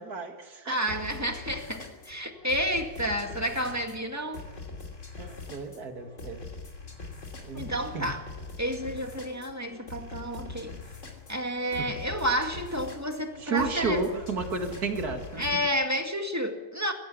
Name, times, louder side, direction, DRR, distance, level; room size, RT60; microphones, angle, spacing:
voice 1, 0.0-0.8 5.2-6.4 7.4-8.1 11.8-11.9 13.4-15.4, right 4 dB, 45° right, 5 dB, 2.4 m, -32 dB
voice 2, 0.6-4.5 7.5-8.2 8.6-10.8 11.3-14.2 15.4-16.9, equal, 10° right, 4 dB, 1.7 m, -30 dB
sound 1, 0.9-15.6, left 3 dB, 35° left, 3.1 m, -43 dB
19.0 x 16.5 x 8.3 m, 1.3 s
omnidirectional pair, 2.2 m